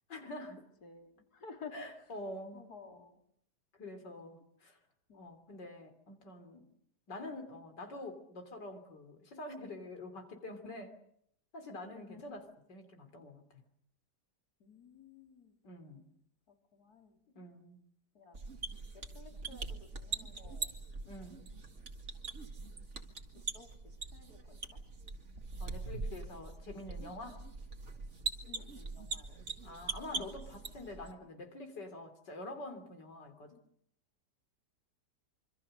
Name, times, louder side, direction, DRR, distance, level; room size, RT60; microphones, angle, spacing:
voice 1, 0.1-0.6 1.7-2.6 3.8-4.8 5.1-6.7 7.1-10.9 11.5-13.6 15.6-16.1 17.3-17.8 21.0-21.5 25.6-27.4 29.6-33.6, left 2 dB, 85° left, 6 dB, 3.8 m, -46 dB
voice 2, 0.8-1.8 2.5-3.2 5.1-5.3 11.9-12.4 14.6-15.6 16.5-17.2 18.1-18.4 18.9-20.7 23.3-23.7 24.1-24.8 28.5-29.4 30.1-30.3, left 5 dB, 65° left, 4 dB, 3.7 m, -53 dB
sound 1, 18.3-31.1, right 4 dB, 45° right, 2.4 m, -42 dB
26.0 x 25.0 x 6.6 m, 0.71 s
omnidirectional pair, 1.8 m